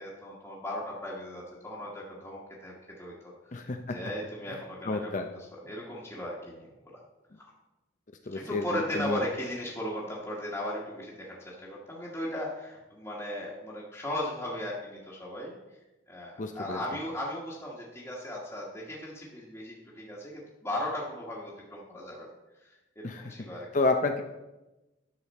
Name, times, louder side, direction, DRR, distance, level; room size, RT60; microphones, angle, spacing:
voice 1, 0.0-5.1 5.6-7.0 7.4-7.5 8.3-15.5 16.1-22.3 22.6-23.7, left 1 dB, 15° left, -6 dB, 1.4 m, -37 dB
voice 2, 3.5-4.0 4.5-4.6 4.8-5.3 8.3-9.2 16.4-16.8 23.0-23.3 23.7-24.2, left 3 dB, 40° left, 5 dB, 0.5 m, -30 dB
10.5 x 6.8 x 4.2 m, 1.0 s
head